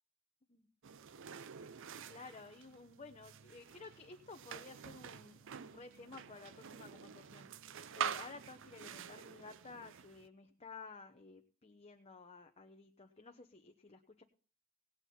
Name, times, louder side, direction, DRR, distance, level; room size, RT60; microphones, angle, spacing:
sound 1, 0.8-10.3, right 7 dB, 60° right, 0.5 m, -47 dB
voice 1, 2.1-7.5 8.0-14.2, left 4 dB, 30° left, 5 dB, 0.9 m, -54 dB
18.5 x 8.8 x 4.3 m, 0.40 s
head